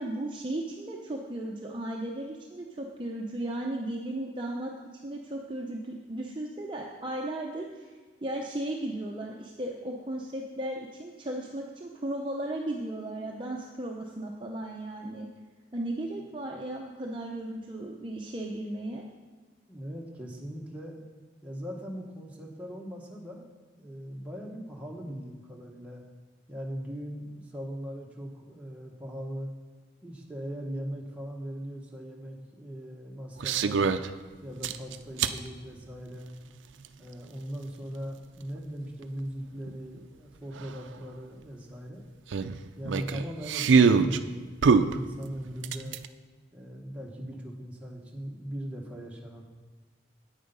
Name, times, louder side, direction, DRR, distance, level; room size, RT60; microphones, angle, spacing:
voice 1, 0.0-4.7 5.0-7.9 8.2-15.3 15.7-19.0, right 1 dB, 25° right, -1 dB, 0.7 m, -35 dB
voice 2, 19.7-21.0 21.4-23.4 23.8-26.0 26.5-29.5 30.0-34.0 34.4-36.3 37.0-42.0 42.8-46.0 46.5-49.4, equal, 5° right, -2 dB, 1.2 m, -39 dB
Morning Need, 33.4-34.1 34.6-35.4 36.8-36.9 39.7-39.8 40.0-40.1 40.6-40.7 42.3-44.2 44.6-46.0, right 5 dB, 80° right, 0.4 m, -23 dB
8.9 x 8.4 x 5.4 m, 1.4 s
head